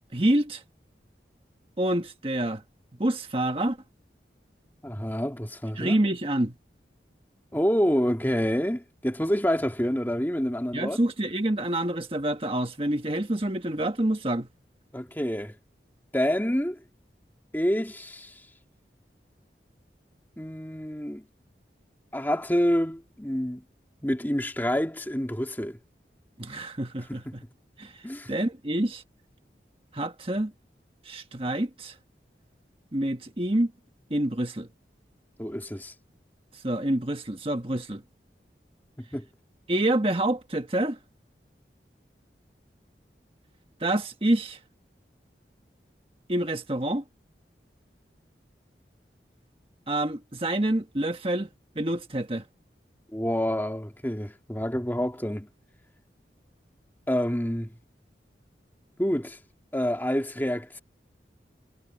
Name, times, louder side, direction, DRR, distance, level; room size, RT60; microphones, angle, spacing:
voice 1, 0.1-0.6 1.8-2.6 3.0-3.8 5.8-6.5 10.7-14.5 26.4-27.4 27.8-29.0 29.9-30.5 31.0-31.9 32.9-33.7 34.1-34.7 36.5-38.0 39.7-41.0 43.8-44.6 46.3-47.0 49.9-51.5 51.7-52.4, right 1 dB, 30° right, 1.4 m, -27 dB
voice 2, 4.8-6.0 7.5-11.0 14.9-15.5 16.1-16.8 17.5-18.4 20.4-21.3 22.1-23.6 24.0-25.8 27.2-27.3 28.0-28.3 35.4-35.9 39.1-39.3 53.1-55.5 57.1-57.7 59.0-59.4 59.7-60.8, equal, 10° left, 2.3 m, -27 dB
head